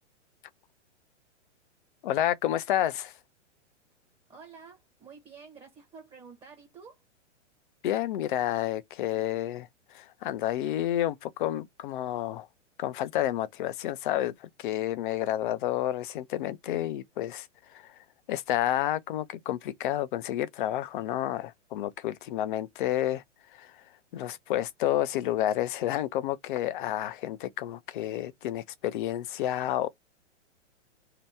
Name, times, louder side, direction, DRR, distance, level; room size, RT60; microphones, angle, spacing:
voice 1, 2.0-3.1 7.8-12.5 12.8-17.5 17.7-17.9 18.3-23.2 23.5-23.7 24.1-29.9, left 12 dB, 45° left, 0.5 m, -30 dB
voice 2, 4.3-7.0, right 5 dB, 15° right, 0.8 m, -50 dB
2.8 x 2.1 x 3.3 m
hypercardioid pair, 125°, 36 cm